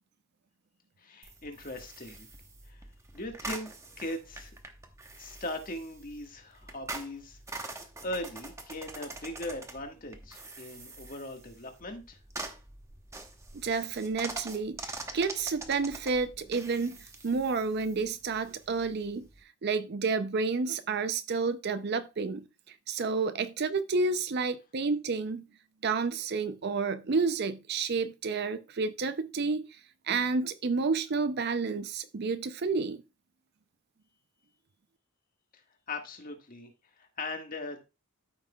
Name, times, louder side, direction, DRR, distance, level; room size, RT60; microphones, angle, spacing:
voice 1, 1.0-2.3 2.7-2.8 3.1-3.7 4.0-4.5 5.2-12.2 35.9-36.7 37.0-37.8, left 1 dB, 40° left, 1.5 m, -39 dB
sound 1, 1.2-19.4, right 2 dB, 15° right, 0.8 m, -45 dB
voice 2, 13.5-17.0 17.2-19.3 19.6-22.5 22.9-25.4 25.8-29.7 30.1-33.0, right 4 dB, 50° right, 0.5 m, -30 dB
13.5 x 5.7 x 2.3 m
head